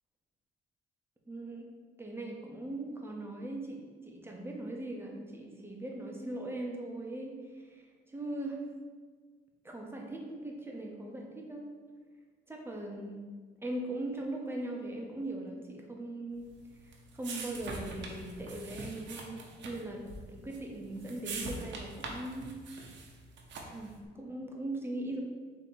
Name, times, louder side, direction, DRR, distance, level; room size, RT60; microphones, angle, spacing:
voice 1, 1.3-1.7 2.0-8.6 9.6-11.7 12.5-13.2 13.6-16.5 16.8-20.0 20.3-22.5 23.5-25.2, right 1 dB, 10° right, 0 dB, 0.8 m, -40 dB
sound 1, 16.5-23.9, right 3 dB, 65° right, 0.9 m, -43 dB
4.0 x 2.9 x 4.5 m, 1.5 s
cardioid pair, 90°, 20 cm